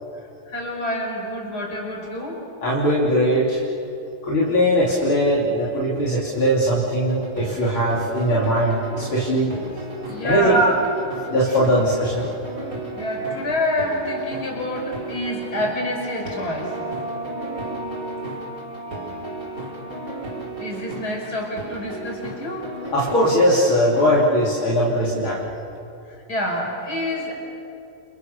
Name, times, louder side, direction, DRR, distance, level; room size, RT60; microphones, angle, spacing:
voice 1, 0.5-2.4 10.1-10.7 13.0-16.7 20.6-22.7 26.3-27.4, left 1 dB, 45° left, -1 dB, 6.1 m, -27 dB
voice 2, 2.6-3.6 4.2-9.5 10.2-10.7 11.3-12.2 22.9-25.4, equal, 70° left, -6 dB, 3.9 m, -20 dB
sound 1, 7.0-24.1, right 2 dB, 40° right, 4.7 m, -34 dB
sound 2, 15.2-22.4, right 1 dB, 20° right, 1.6 m, -37 dB
29.0 x 29.0 x 6.8 m, 2.7 s
omnidirectional pair, 2.4 m